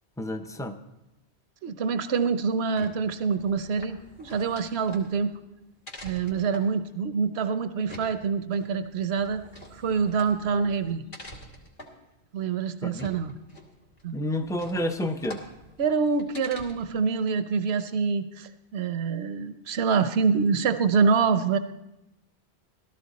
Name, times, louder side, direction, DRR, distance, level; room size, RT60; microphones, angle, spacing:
voice 1, 0.2-0.8 12.8-13.1 14.1-15.4, left 1 dB, 5° left, 7 dB, 0.5 m, -30 dB
voice 2, 1.6-5.3 6.0-9.4 9.7-11.0 12.3-13.3 14.0-14.2 15.8-21.6, right 5 dB, 70° right, 11 dB, 1.0 m, -26 dB
sound 1, 2.5-17.0, left 1 dB, 80° left, 2.3 m, -47 dB
16.0 x 13.0 x 4.1 m, 0.91 s
omnidirectional pair, 1.1 m